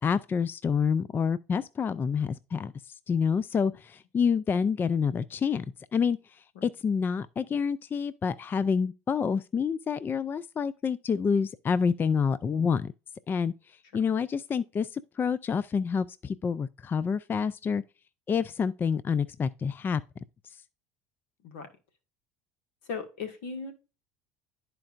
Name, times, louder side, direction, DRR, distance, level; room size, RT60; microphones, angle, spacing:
voice 1, 0.0-5.6 5.9-12.9 13.3-13.5 13.9-17.8 18.3-20.0, left 6 dB, 30° left, 0.4 m, -28 dB
voice 2, 22.9-23.7, left 5 dB, 75° left, 1.8 m, -36 dB
11.5 x 4.5 x 2.5 m
hypercardioid pair, 85°, 7 cm